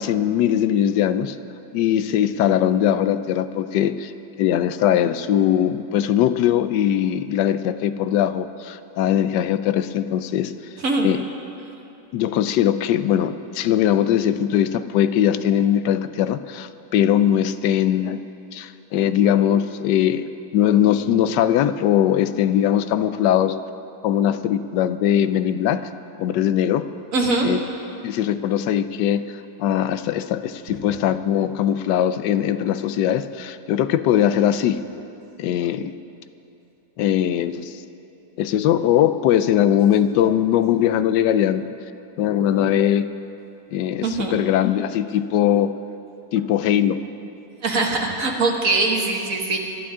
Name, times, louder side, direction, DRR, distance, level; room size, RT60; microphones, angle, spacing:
voice 1, 0.0-1.4 1.7-4.1 4.4-10.5 11.0-11.2 12.1-18.2 18.5-23.6 24.0-25.8 26.2-26.9 27.4-27.6 28.0-29.2 29.6-34.8 35.4-36.0 37.0-37.8 38.4-41.6 42.2-43.1 43.7-45.7 46.3-47.0, left 10 dB, 90° left, 12 dB, 1.2 m, -20 dB
voice 2, 27.1-27.5 44.0-44.4 47.6-49.6, right 3 dB, 55° right, 1 dB, 1.9 m, -21 dB
24.0 x 12.0 x 3.7 m, 2.8 s
omnidirectional pair, 1.8 m